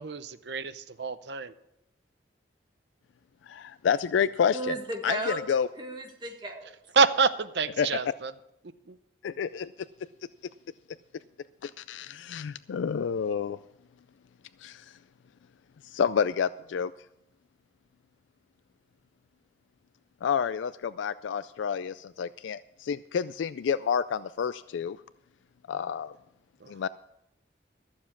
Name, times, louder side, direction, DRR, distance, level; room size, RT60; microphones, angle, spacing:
voice 1, 0.0-1.5 7.0-8.3 8.9-9.0 26.6-26.7, right 5 dB, 70° right, 12 dB, 0.7 m, -27 dB
voice 2, 3.5-4.7 5.0-5.7 7.8-8.1 9.2-9.7 11.6-13.6 14.6-14.8 15.9-16.9 20.2-25.0 25.7-26.1 26.7-26.9, left 7 dB, 90° left, 15 dB, 0.3 m, -29 dB
voice 3, 4.5-6.8, right 1 dB, 25° right, 3 dB, 1.7 m, -35 dB
13.5 x 7.3 x 7.2 m, 0.85 s
head